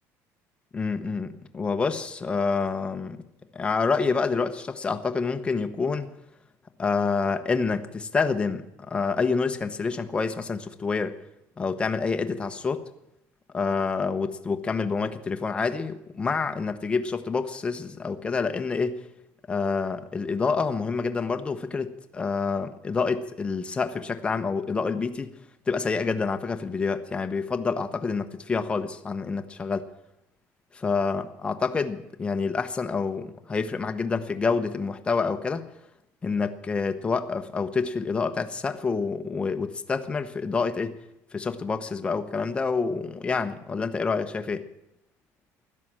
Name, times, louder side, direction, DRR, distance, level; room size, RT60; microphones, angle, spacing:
voice 1, 0.7-3.2 3.5-6.1 6.8-11.2 11.6-12.8 13.5-19.0 19.5-25.3 25.7-29.8 30.8-35.6 36.2-41.0 41.3-44.6, left 4 dB, 15° left, 8 dB, 1.0 m, -27 dB
16.0 x 12.0 x 7.5 m, 0.85 s
cardioid pair, 150°, 6 cm